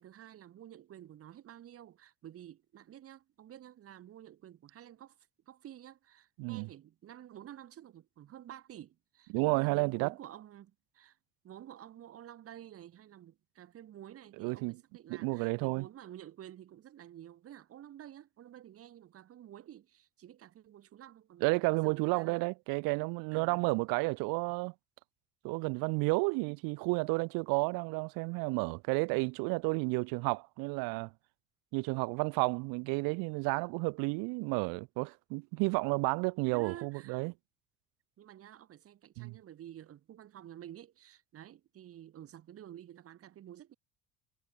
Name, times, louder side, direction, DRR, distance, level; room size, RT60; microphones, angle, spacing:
voice 1, 0.0-5.2 5.5-11.2 11.4-22.5 23.3-23.6 36.4-37.2 38.2-43.7, right 11 dB, 40° right, 6.7 m, -51 dB
voice 2, 9.3-10.1 14.4-14.8 15.1-15.9 21.4-24.7 25.4-31.1 31.7-37.3 39.2-39.4, right 29 dB, 90° right, 1.5 m, -31 dB
cardioid pair, 155°, 34 cm